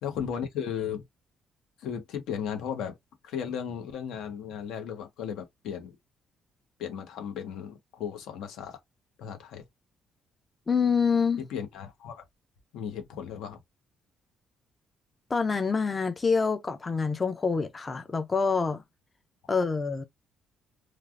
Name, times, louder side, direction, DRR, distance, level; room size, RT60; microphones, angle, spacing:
voice 1, 0.0-1.0 1.8-2.9 3.2-6.0 6.8-8.8 9.2-9.6 11.4-12.2 12.7-13.6, left 8 dB, 85° left, 1.0 m, -35 dB
voice 2, 10.7-11.4 15.3-18.8 19.5-20.0, left 5 dB, 20° left, 0.3 m, -26 dB
3.2 x 2.3 x 2.4 m
cardioid pair, 170°, 0 cm